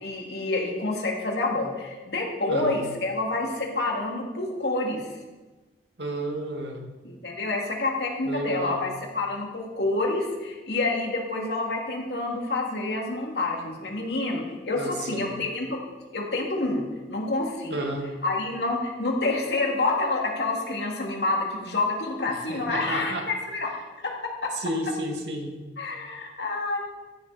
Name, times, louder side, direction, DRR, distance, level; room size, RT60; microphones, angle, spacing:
voice 1, 0.0-5.0 7.0-15.8 16.1-16.8 17.1-17.8 18.2-23.7 24.0-24.1 24.4-24.5 25.8-26.8, left 2 dB, 70° left, 0 dB, 2.5 m, -28 dB
voice 2, 2.5-2.8 6.0-6.8 8.2-8.9 14.7-15.3 17.7-18.1 22.3-23.3 24.5-25.5, right 1 dB, 80° right, 2 dB, 2.2 m, -31 dB
14.5 x 11.0 x 4.2 m, 1.2 s
head